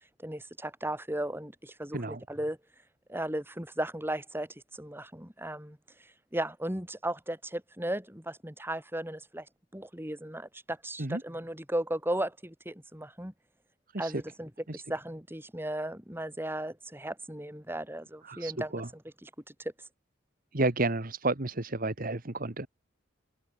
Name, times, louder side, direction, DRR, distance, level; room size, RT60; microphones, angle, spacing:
voice 1, 0.2-2.6 3.1-9.5 9.7-13.3 14.0-18.7 19.2-19.3 19.6-19.7, right 1 dB, 10° right, 6.7 m, -36 dB
voice 2, 18.2-18.9 20.5-22.7, right 2 dB, 45° right, 1.6 m, -31 dB
head